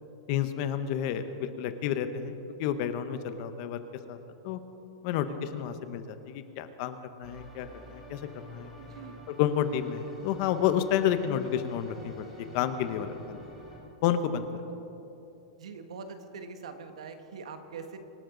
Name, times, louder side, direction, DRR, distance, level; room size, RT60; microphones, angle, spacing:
voice 1, 0.3-2.3 2.6-3.8 4.1-4.2 4.4-4.6 5.0-8.7 9.4-12.2 12.5-13.4 14.0-14.5, left 9 dB, 40° left, 10 dB, 0.9 m, -30 dB
sound 1, 7.2-13.8, equal, 5° right, 4.3 m, -49 dB
voice 2, 8.8-9.2 15.6-18.0, right 5 dB, 90° right, 7 dB, 1.6 m, -43 dB
25.0 x 12.0 x 3.9 m, 2.9 s
supercardioid pair, 165°, 3 cm